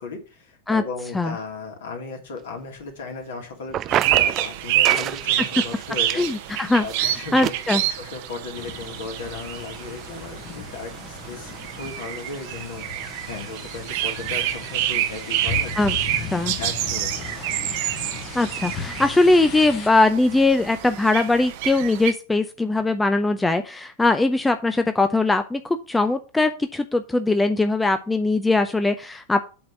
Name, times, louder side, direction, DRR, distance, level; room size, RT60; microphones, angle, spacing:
voice 1, 0.0-12.9 13.3-15.9 16.5-17.3, left 4 dB, 60° left, 3 dB, 2.7 m, -36 dB
sound 1, 3.7-4.5 4.8-5.2 5.6-6.5 6.9-7.0 7.4-7.5, right 12 dB, 30° right, 0.4 m, -26 dB
sound 2, 3.9-22.1, right 13 dB, 50° right, 0.9 m, -28 dB
voice 2, 6.1-7.8 15.8-15.9 16.3-16.5 18.3-29.5, left 2 dB, 10° left, 9 dB, 0.6 m, -21 dB
sound 3, 8.5-19.9, left 7 dB, 30° left, 1.1 m, -37 dB
8.5 x 4.2 x 6.0 m, 0.34 s
figure-of-eight pair, 90°, 0 cm